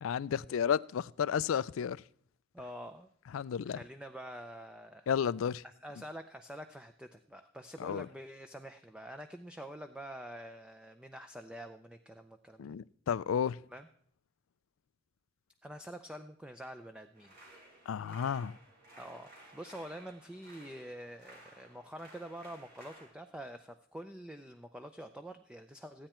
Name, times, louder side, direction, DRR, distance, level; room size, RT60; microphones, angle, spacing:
voice 1, 0.0-2.0 3.3-3.8 5.1-5.6 7.8-8.1 12.6-13.6 17.9-18.5, left 7 dB, 80° left, 0.4 m, -32 dB
voice 2, 2.5-3.1 3.7-5.1 5.6-12.7 13.7-13.9 15.6-17.3 19.0-26.1, equal, 5° right, 0.5 m, -47 dB
sound 1, 17.1-23.1, right 1 dB, 50° right, 4.4 m, -56 dB
15.5 x 9.1 x 4.4 m
head